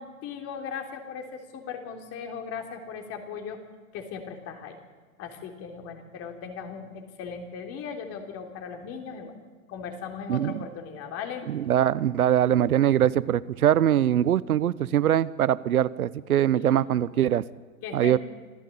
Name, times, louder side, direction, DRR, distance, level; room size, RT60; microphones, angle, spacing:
voice 1, 0.0-3.6 3.9-4.8 5.2-9.3 9.7-11.5 16.5-16.9 17.8-18.2, left 6 dB, 35° left, 4 dB, 3.5 m, -38 dB
voice 2, 10.3-10.6 11.5-17.4 17.9-18.2, right 11 dB, 85° right, 18 dB, 0.9 m, -22 dB
26.0 x 14.0 x 8.6 m, 1.4 s
hypercardioid pair, 125°, 43 cm